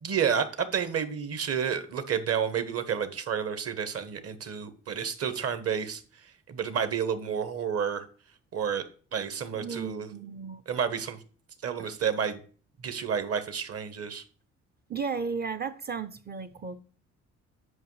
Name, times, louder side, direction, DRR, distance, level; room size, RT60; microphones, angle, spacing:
voice 1, 0.0-6.0 6.5-8.0 8.5-8.8 9.1-10.1 10.7-11.2 11.6-12.4 12.8-14.2, right 7 dB, 50° right, 1.0 m, -30 dB
voice 2, 9.5-10.6 11.8-11.9 14.9-16.8, right 5 dB, 35° right, 0.5 m, -34 dB
9.6 x 5.2 x 3.2 m
cardioid pair, 90°, 30 cm